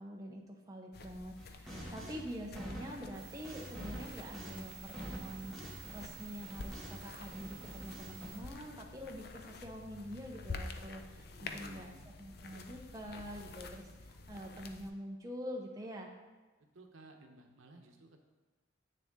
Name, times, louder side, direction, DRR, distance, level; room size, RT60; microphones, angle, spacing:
voice 1, 0.0-11.9 12.2-16.1, equal, 15° right, 0 dB, 0.7 m, -46 dB
sound 1, 0.9-14.9, left 3 dB, 50° left, 0.5 m, -49 dB
sound 2, 1.4-7.1 7.3-8.3, equal, ahead, 1.4 m, -47 dB
sound 3, 3.1-8.4, right 8 dB, 50° right, 1.2 m, -53 dB
voice 2, 11.4-12.1 16.7-18.2, right 2 dB, 85° right, 4 dB, 1.0 m, -56 dB
7.9 x 6.7 x 3.6 m, 1.3 s
head